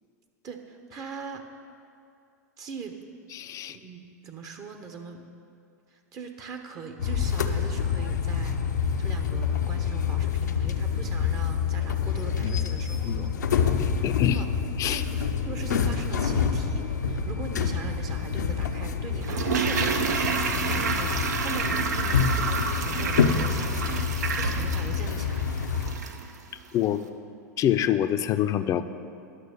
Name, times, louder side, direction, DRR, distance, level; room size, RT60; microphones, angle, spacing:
voice 1, 0.4-1.5 2.6-3.0 3.7-5.2 5.9-13.3 14.0-14.5 14.9-25.6, right 5 dB, 40° right, 5 dB, 1.0 m, -41 dB
voice 2, 3.3-3.8 12.4-12.5 13.0-13.2 13.8-14.4 14.8-15.0 26.7-27.0 27.6-28.8, left 11 dB, 35° left, 11 dB, 0.5 m, -26 dB
sound 1, 7.0-25.9, left 6 dB, 80° left, 0.7 m, -27 dB
Toilet flush, 19.2-26.3 26.6-26.7, right 5 dB, 80° right, 0.8 m, -29 dB
11.5 x 6.5 x 6.6 m, 2.5 s
hypercardioid pair, 95°, 9 cm